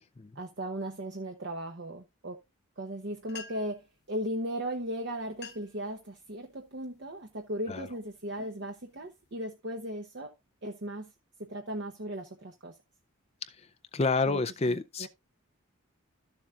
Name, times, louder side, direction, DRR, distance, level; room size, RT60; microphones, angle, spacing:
voice 1, 0.3-2.4 2.8-10.3 10.6-11.1 11.4-12.7 14.3-14.4 14.7-15.1, equal, 50° right, 1.0 m, -37 dB
sound 1, 3.0-3.1 3.3-3.9 4.8-4.9 5.3-5.8 6.3-6.7 7.3-7.6 8.1-9.3, left 6 dB, 50° left, 1.0 m, -49 dB
voice 2, 13.9-15.1, left 3 dB, 30° left, 0.5 m, -29 dB
13.5 x 7.2 x 2.4 m
head